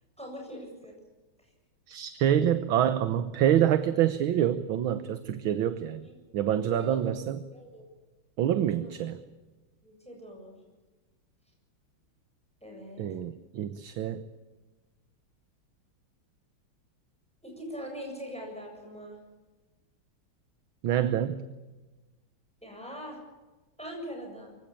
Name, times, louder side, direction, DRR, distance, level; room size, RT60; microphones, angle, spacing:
voice 1, 0.2-0.9 6.0-6.2 6.5-7.1 7.5-7.8 8.5-9.1 9.8-10.6 12.6-13.2 17.4-19.2 22.6-23.2 23.8-24.6, equal, 5° left, 1 dB, 7.7 m, -42 dB
voice 2, 1.9-6.0 6.3-7.4 8.4-9.2 13.0-14.2 20.8-21.4, right 10 dB, 75° right, 11 dB, 1.7 m, -26 dB
24.0 x 16.5 x 8.7 m, 1.2 s
omnidirectional pair, 2.3 m